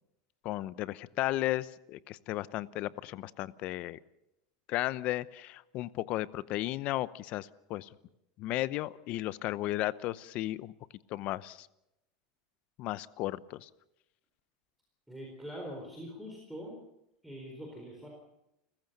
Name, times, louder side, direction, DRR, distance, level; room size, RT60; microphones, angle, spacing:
voice 1, 0.4-4.0 4.7-7.9 8.4-10.7 11.1-11.7 12.8-13.7, left 16 dB, 45° left, 18 dB, 0.8 m, -34 dB
voice 2, 15.1-16.8 17.2-18.1, equal, ahead, -1 dB, 4.2 m, -43 dB
29.5 x 15.0 x 6.7 m, 0.87 s
supercardioid pair, 140°, 3 cm